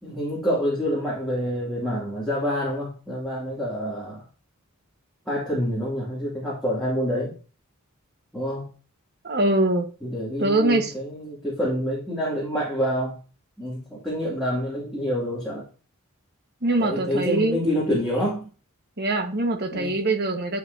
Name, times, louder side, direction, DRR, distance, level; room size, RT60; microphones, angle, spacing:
voice 1, 0.0-4.3 5.3-7.3 8.3-8.7 10.0-13.2 13.6-15.7 16.8-18.5 19.7-20.0, equal, ahead, -9 dB, 2.6 m, -27 dB
voice 2, 9.2-9.9 10.4-10.9 16.6-17.6 19.0-20.6, right 2 dB, 50° right, 5 dB, 1.4 m, -23 dB
9.6 x 5.5 x 2.7 m, 0.37 s
head